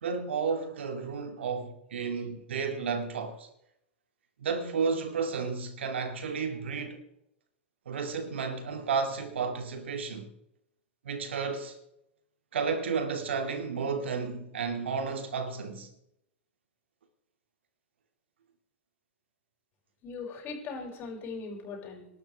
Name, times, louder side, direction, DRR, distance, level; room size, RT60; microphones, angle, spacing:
voice 1, 0.0-3.5 4.4-7.0 7.9-10.3 11.0-11.8 12.5-15.9, right 5 dB, 75° right, 2.5 m, -32 dB
voice 2, 20.0-22.1, left 4 dB, 35° left, 6.5 m, -39 dB
26.0 x 12.0 x 3.5 m
hypercardioid pair, 105°, 6 cm